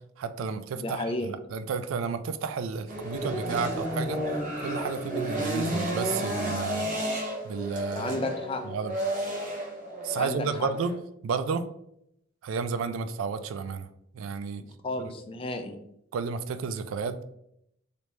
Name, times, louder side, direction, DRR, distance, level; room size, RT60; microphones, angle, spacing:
voice 1, 0.2-4.2 4.6-6.9 7.4-8.1 8.6-8.9 10.0-10.9 11.2-11.7 12.4-13.9 14.1-14.6 15.0-15.1 16.1-17.2, right 5 dB, 85° right, 12 dB, 0.3 m, -32 dB
voice 2, 0.8-1.3 7.9-8.6 10.2-10.7 14.6-15.8, left 2 dB, 25° left, 6 dB, 0.4 m, -33 dB
sound 1, 2.9-11.0, right 1 dB, 40° right, 0.8 m, -32 dB
3.3 x 2.7 x 3.1 m, 0.76 s
head